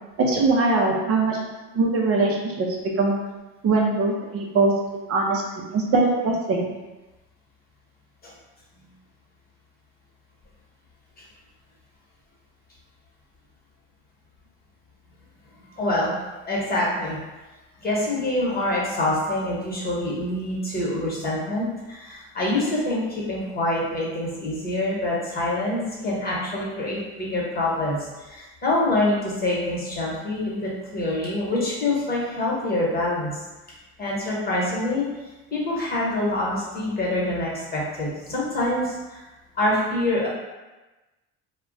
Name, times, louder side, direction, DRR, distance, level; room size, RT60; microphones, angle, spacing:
voice 1, 0.2-1.4 1.7-2.7 3.0-3.1 3.6-4.7 5.1-6.7, right 3 dB, 45° right, -1 dB, 0.5 m, -21 dB
voice 2, 15.7-16.2 16.4-17.2 17.8-33.3 34.0-35.1 35.5-39.2 39.5-40.3, left 1 dB, 30° left, -5 dB, 1.1 m, -25 dB
2.3 x 2.1 x 3.9 m, 1.1 s
supercardioid pair, 90°, 33 cm